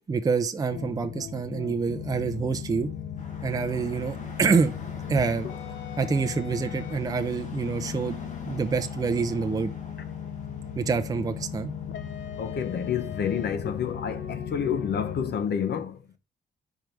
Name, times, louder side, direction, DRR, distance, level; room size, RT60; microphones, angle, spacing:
voice 1, 0.1-2.9 3.4-4.7 5.1-5.5 6.0-9.7 10.8-11.7, right 5 dB, 20° right, 0.5 m, -27 dB
sound 1, 0.7-15.4, left 8 dB, 85° left, 0.7 m, -37 dB
sound 2, 3.2-13.9, left 1 dB, 40° left, 1.8 m, -48 dB
voice 2, 12.4-16.0, left 7 dB, 65° left, 0.9 m, -29 dB
4.7 x 4.6 x 5.2 m
wide cardioid pair, 175°, 19 cm